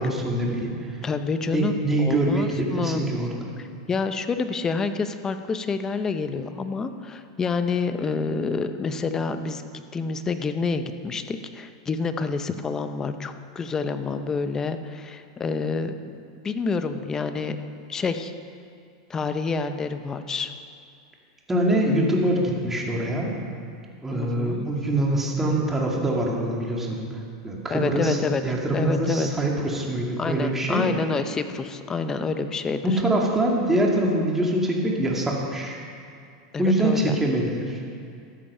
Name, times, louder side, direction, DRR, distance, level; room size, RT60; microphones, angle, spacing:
voice 1, 0.0-1.0 1.5-3.5 21.5-23.3 24.0-30.8 32.8-35.8 36.6-37.8, right 1 dB, 10° right, -1 dB, 2.1 m, -24 dB
voice 2, 1.0-3.0 3.6-9.6 9.9-15.9 16.4-17.6 17.9-18.3 19.1-20.5 24.1-24.7 27.7-28.4 28.7-29.3 30.2-33.0 36.5-37.1, left 4 dB, 20° left, 9 dB, 0.7 m, -28 dB
13.5 x 8.6 x 5.5 m, 2.4 s
supercardioid pair, 130°, 3 cm